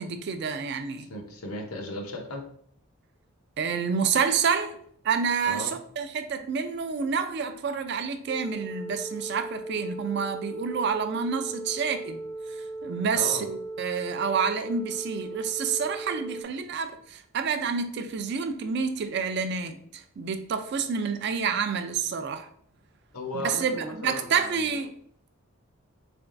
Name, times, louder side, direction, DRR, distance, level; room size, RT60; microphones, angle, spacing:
voice 1, 0.0-1.1 3.6-4.8 5.0-12.2 12.5-22.5 23.4-25.0, right 6 dB, 50° right, 0.3 m, -28 dB
voice 2, 1.1-2.5 5.5-5.7 13.1-13.5 23.1-24.6, left 1 dB, 85° left, 0.8 m, -36 dB
sound 1, 8.3-16.4, right 2 dB, 20° left, 0.4 m, -38 dB
3.8 x 3.4 x 2.5 m
head